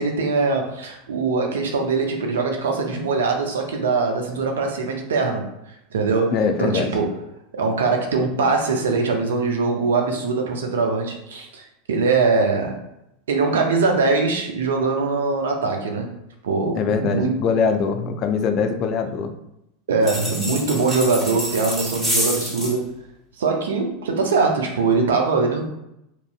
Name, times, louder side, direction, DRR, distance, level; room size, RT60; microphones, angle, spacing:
voice 1, 0.0-5.5 5.9-7.1 7.5-12.8 13.3-16.1 16.4-17.4 19.9-22.9 23.4-25.6, right 4 dB, 75° right, 2 dB, 0.5 m, -22 dB
voice 2, 6.3-6.9 16.8-19.3, left 5 dB, 45° left, 6 dB, 0.4 m, -22 dB
sound 1, 20.0-22.8, equal, 10° right, 1.2 m, -27 dB
2.9 x 2.6 x 2.2 m, 0.83 s
hypercardioid pair, 85°, 0 cm